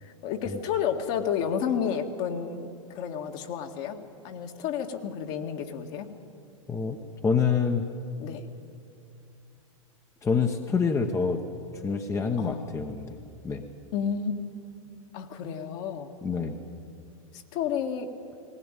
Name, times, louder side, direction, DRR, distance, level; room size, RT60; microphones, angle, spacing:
voice 1, 0.0-6.1 8.2-8.5 12.4-12.6 13.9-14.5 15.1-16.1 17.3-18.1, left 7 dB, 45° left, 5 dB, 1.9 m, -31 dB
voice 2, 7.2-7.8 10.2-11.4 11.8-13.1 13.4-13.6 16.2-16.6, left 5 dB, 15° left, 5 dB, 1.1 m, -26 dB
19.0 x 18.5 x 9.1 m, 2.5 s
hypercardioid pair, 110°, 17 cm